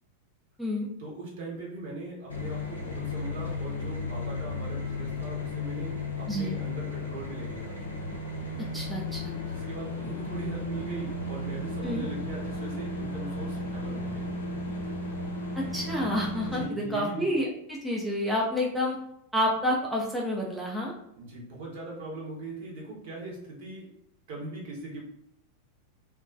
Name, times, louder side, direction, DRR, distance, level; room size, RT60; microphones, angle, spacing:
voice 1, 1.0-7.8 9.4-14.3 16.4-17.3 21.2-23.9 24.3-25.0, right 2 dB, 55° right, -3 dB, 0.9 m, -40 dB
sound 1, 2.3-16.7, left 2 dB, 75° left, 0.5 m, -34 dB
voice 2, 8.7-9.3 11.8-12.0 15.6-19.0 19.3-20.9, equal, 5° right, -4 dB, 0.4 m, -29 dB
2.2 x 2.2 x 2.5 m, 0.77 s
figure-of-eight pair, 90°, 0 cm